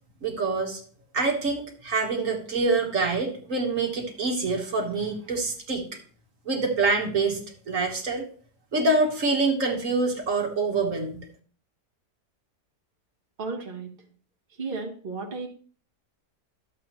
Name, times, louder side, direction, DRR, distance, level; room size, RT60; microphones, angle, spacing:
voice 1, 0.2-0.8 1.1-5.8 6.5-7.4 7.7-8.3 8.7-11.3, right 3 dB, 55° right, 1 dB, 1.8 m, -25 dB
voice 2, 13.4-13.9 14.6-15.5, right 4 dB, 35° right, 1 dB, 1.3 m, -33 dB
12.0 x 7.7 x 3.0 m, 0.43 s
omnidirectional pair, 1.7 m